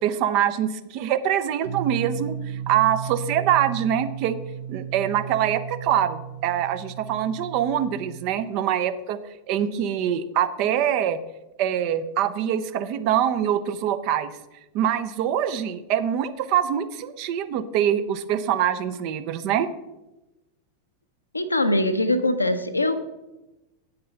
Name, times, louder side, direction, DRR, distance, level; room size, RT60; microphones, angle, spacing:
voice 1, 0.0-4.4 4.7-9.2 9.5-11.2 11.6-14.3 14.7-19.7, right 10 dB, 45° right, 11 dB, 0.6 m, -24 dB
sound 1, 1.6-8.5, right 9 dB, 70° right, 0.9 m, -35 dB
voice 2, 21.3-23.0, left 1 dB, 85° left, 8 dB, 0.7 m, -22 dB
8.6 x 6.7 x 5.7 m, 1.0 s
figure-of-eight pair, 90°, 0 cm